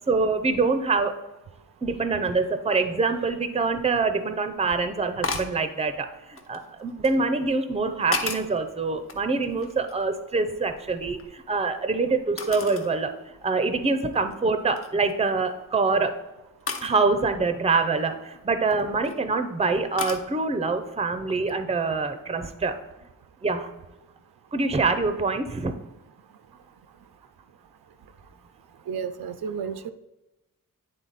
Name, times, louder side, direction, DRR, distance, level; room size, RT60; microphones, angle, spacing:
voice 1, 0.1-1.2 1.8-13.1 13.4-16.2 16.8-22.7 23.4-23.7 24.5-25.7, right 4 dB, 20° right, 9 dB, 0.5 m, -25 dB
sound 1, 5.2-5.6 6.4-7.2 7.8-8.6 9.0-10.1 10.4-11.7 12.4-12.9 13.4-13.5 14.1-14.3 14.7-15.1 16.7-16.9 18.6-19.1 20.0-20.3, left 3 dB, 40° left, 0.7 m, -33 dB
voice 2, 28.9-29.9, right 6 dB, 90° right, 11 dB, 0.5 m, -32 dB
9.2 x 3.8 x 4.0 m, 1.0 s
wide cardioid pair, 155°, 35 cm